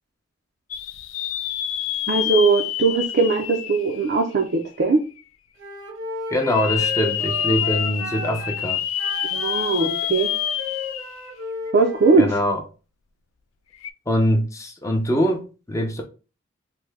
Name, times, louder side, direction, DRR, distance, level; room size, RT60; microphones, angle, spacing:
sound 1, 0.7-4.7 5.2-5.3 6.4-11.3 11.7-11.8 13.7-13.9, left 11 dB, 85° left, 0.3 m, -27 dB
voice 1, 2.1-5.0 9.3-10.3 11.7-12.4, right 4 dB, 55° right, 0.4 m, -20 dB
Wind instrument woodwind instrument, 5.6-8.6 9.0-12.4, left 1 dB, 85° right, 1.1 m, -34 dB
voice 2, 6.3-8.8 12.2-12.6 14.1-16.0, equal, 15° left, 0.5 m, -23 dB
3.2 x 2.1 x 3.4 m
head